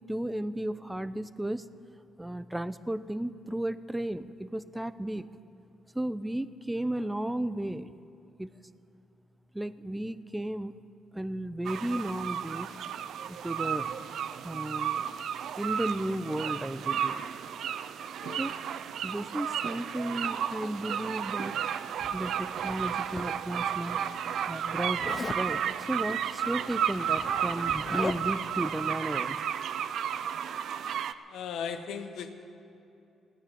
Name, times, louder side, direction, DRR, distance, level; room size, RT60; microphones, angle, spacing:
voice 1, 0.0-1.7 2.2-5.3 5.9-7.9 8.4-8.5 9.5-10.8 11.1-12.7 13.3-13.9 14.2-15.2 15.6-17.2 18.4-18.5 19.0-21.6 22.1-24.0 24.5-29.4, right 1 dB, 10° right, 14 dB, 0.6 m, -34 dB
sound 1, 11.7-31.1, right 8 dB, 70° right, 0.5 m, -33 dB
Zipper (clothing), 22.0-23.7 25.0-25.5 26.6-26.7 27.0-28.5, left 4 dB, 30° left, 0.7 m, -39 dB
voice 2, 31.3-32.3, left 7 dB, 75° left, 8 dB, 1.1 m, -37 dB
16.0 x 10.0 x 8.5 m, 2.8 s
cardioid pair, 90°, 0 cm